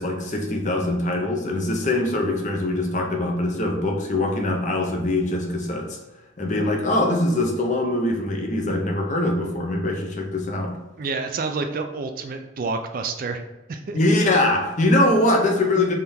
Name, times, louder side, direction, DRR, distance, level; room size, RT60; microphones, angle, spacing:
voice 1, 0.0-6.0 6.4-10.8 13.9-15.9, left 1 dB, 35° left, 2 dB, 0.7 m, -22 dB
voice 2, 11.0-13.4 13.7-14.0, right 4 dB, 45° right, 6 dB, 0.3 m, -28 dB
3.7 x 3.4 x 4.2 m, 1.0 s
head